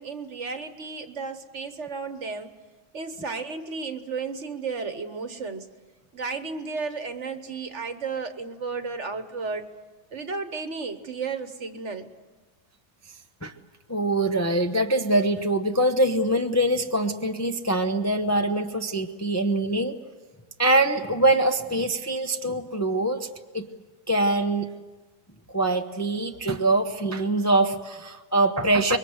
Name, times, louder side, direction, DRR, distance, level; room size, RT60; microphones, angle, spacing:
voice 1, 0.0-2.5 2.9-5.7 6.1-9.6 10.1-12.1, right 4 dB, 50° right, 9 dB, 1.5 m, -33 dB
voice 2, 13.9-20.0 20.6-23.3 23.5-23.7 24.1-24.7 25.5-29.0, right 1 dB, 15° left, 4 dB, 0.8 m, -23 dB
25.5 x 22.5 x 8.0 m, 1.3 s
omnidirectional pair, 1.7 m